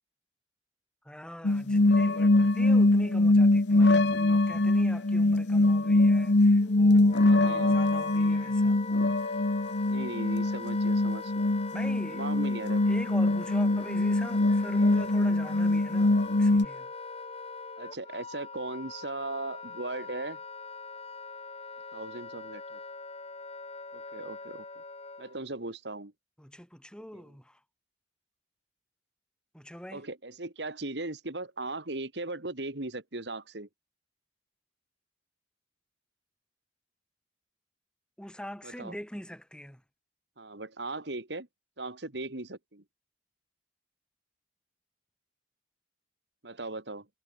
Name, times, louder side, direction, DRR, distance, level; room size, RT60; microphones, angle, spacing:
voice 1, 1.0-8.8 11.7-12.3 12.9-16.9 26.4-27.6 29.5-30.0 38.2-39.8, equal, 5° left, 4.3 m, -43 dB
sound 1, 1.4-16.7, left 2 dB, 70° left, 1.1 m, -23 dB
Wind instrument woodwind instrument, 6.6-25.4, left 4 dB, 35° left, 3.9 m, -42 dB
voice 2, 7.2-7.8 9.9-11.3 12.1-12.9 17.8-20.4 21.9-22.8 23.9-24.6 25.2-26.1 27.1-27.2 29.9-33.7 38.6-38.9 40.4-41.5 41.8-42.8 46.4-47.1, right 2 dB, 70° right, 2.4 m, -38 dB
head